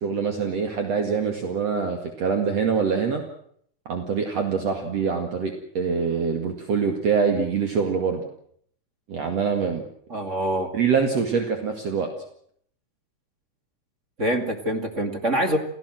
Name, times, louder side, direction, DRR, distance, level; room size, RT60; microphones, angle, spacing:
voice 1, 0.0-3.2 3.9-8.2 9.1-9.8 10.7-12.1, right 6 dB, 55° right, 4 dB, 3.2 m, -24 dB
voice 2, 10.1-10.7 14.2-15.6, right 1 dB, 25° right, 5 dB, 2.3 m, -25 dB
29.0 x 16.5 x 7.8 m, 0.65 s
omnidirectional pair, 3.6 m